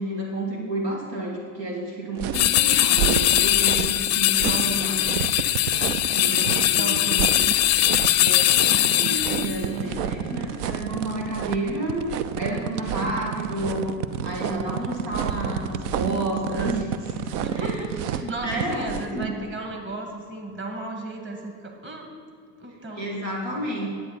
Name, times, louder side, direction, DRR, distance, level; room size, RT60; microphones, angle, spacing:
voice 1, 0.0-5.0 6.1-7.0 8.2-12.1 12.4-13.9 14.2-17.2 17.5-17.8 18.4-19.3 23.0-23.9, right 1 dB, 85° right, -2 dB, 2.1 m, -30 dB
sound 1, 2.2-19.2, right 8 dB, 70° right, 0.7 m, -30 dB
sound 2, 2.3-9.6, left 14 dB, 35° left, 0.5 m, -21 dB
voice 2, 4.4-5.1 6.7-7.6 17.4-22.1 22.6-23.1, right 2 dB, 25° right, 2 dB, 1.8 m, -35 dB
10.5 x 8.6 x 4.1 m, 2.3 s
hypercardioid pair, 85°, 48 cm